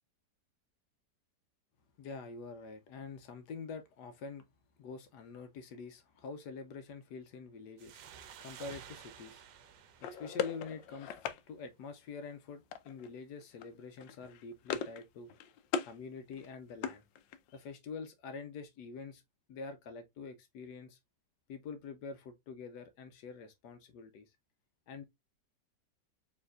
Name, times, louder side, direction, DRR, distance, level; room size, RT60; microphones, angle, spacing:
voice 1, 2.0-4.5 4.8-8.0 8.4-9.4 10.0-15.3 15.8-17.0 17.5-19.2 19.5-21.0 21.5-24.3 24.9-25.0, left 4 dB, 70° left, 1.2 m, -46 dB
sound 1, 7.8-11.2, right 8 dB, 80° right, 1.3 m, -53 dB
sound 2, 10.0-11.4 12.7-13.1 13.4-13.7 14.0-15.0 15.3-15.9 16.3-17.6, left 7 dB, 90° left, 1.3 m, -39 dB
4.5 x 3.3 x 2.3 m
omnidirectional pair, 1.9 m